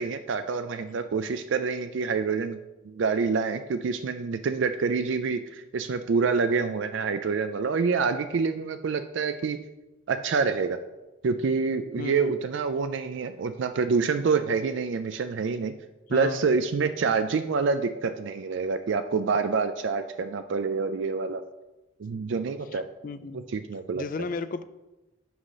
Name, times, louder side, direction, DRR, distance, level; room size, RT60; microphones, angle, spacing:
voice 1, 0.0-2.6 2.8-9.6 10.1-10.8 11.2-15.7 16.1-21.4 22.0-22.9 23.5-24.3, right 5 dB, 65° right, 9 dB, 0.4 m, -27 dB
voice 2, 12.0-12.3 16.1-16.4 22.7-23.5 23.9-24.6, left 4 dB, 40° left, 13 dB, 0.3 m, -34 dB
6.3 x 4.9 x 5.3 m, 1.0 s
head